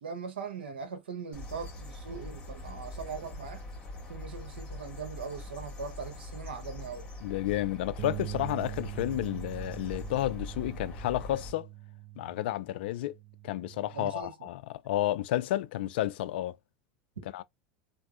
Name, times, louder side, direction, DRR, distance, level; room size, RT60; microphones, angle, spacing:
voice 1, 0.0-3.6 4.1-7.1 13.9-14.5 17.2-17.3, right 5 dB, 90° right, 0.8 m, -40 dB
sound 1, 1.3-11.5, left 2 dB, 15° left, 2.0 m, -43 dB
voice 2, 7.2-11.7 12.2-13.1 13.4-16.6 17.3-17.4, left 14 dB, 75° left, 0.4 m, -31 dB
Bass guitar, 8.0-14.2, right 15 dB, 50° right, 0.4 m, -43 dB
3.4 x 2.6 x 2.4 m
hypercardioid pair, 90°, 6 cm